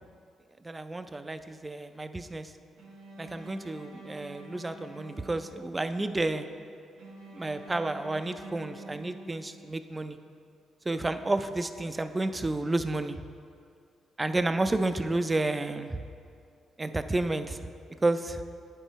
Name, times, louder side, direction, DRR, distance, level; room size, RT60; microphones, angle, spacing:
voice 1, 0.6-2.5 3.2-6.5 7.3-10.2 10.9-13.2 14.2-16.0 16.8-17.6 18.0-18.4, right 2 dB, 20° right, 10 dB, 0.4 m, -31 dB
Bowed string instrument, 2.8-6.0 7.0-9.9, right 1 dB, 90° right, 1.5 m, -47 dB
8.7 x 5.5 x 4.1 m, 2.4 s
cardioid pair, 90°, 0 cm